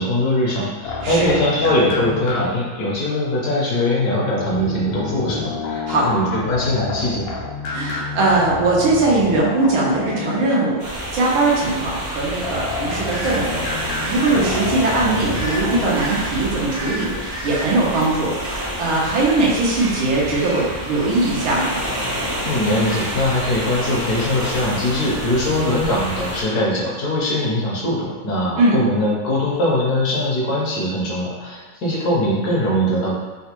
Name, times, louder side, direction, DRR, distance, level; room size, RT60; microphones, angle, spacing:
voice 1, 0.0-7.3 22.4-33.1, left 1 dB, 65° left, -5 dB, 1.0 m, -21 dB
sound 1, 0.8-2.8 4.4-10.8 12.4-15.9, left 4 dB, 80° left, 1.4 m, -29 dB
voice 2, 1.0-1.3 5.9-6.1 7.7-21.8 28.6-28.8, right 2 dB, 80° right, -4 dB, 1.5 m, -20 dB
sound 2, 10.8-26.4, equal, 65° right, 0.4 m, -28 dB
sound 3, 13.0-13.4 14.0-14.3 15.3-15.6 15.9-16.2 16.7-18.9 19.2-19.4 19.7-21.6 21.9-22.1 22.4-23.4, right 1 dB, 45° right, 0.8 m, -34 dB
4.0 x 2.2 x 2.9 m, 1.2 s
omnidirectional pair, 2.2 m